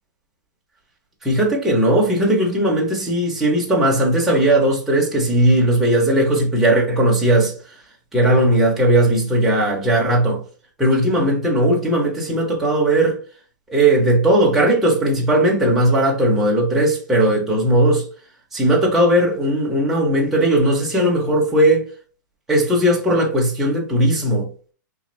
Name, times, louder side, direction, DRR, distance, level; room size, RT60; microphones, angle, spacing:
voice 1, 1.2-7.5 8.1-10.4 10.8-13.2 13.7-18.1 18.5-21.9 22.5-24.5, right 1 dB, ahead, 0.6 m, -17 dB
3.6 x 2.5 x 3.0 m
hypercardioid pair, 170°, 10 cm